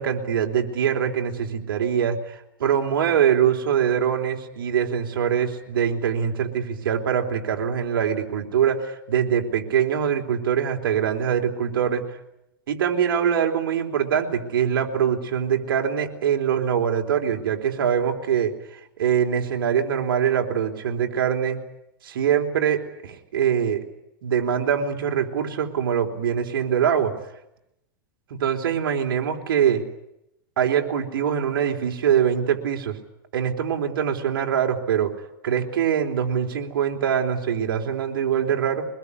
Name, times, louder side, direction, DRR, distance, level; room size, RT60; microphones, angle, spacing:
voice 1, 0.0-12.0 12.7-18.5 19.0-21.6 22.0-23.8 24.2-27.1 28.3-29.8 30.6-33.0 33.3-35.1 35.4-38.9, right 8 dB, 85° right, 4 dB, 3.9 m, -23 dB
24.0 x 21.0 x 9.9 m, 0.83 s
supercardioid pair, 135°, 11 cm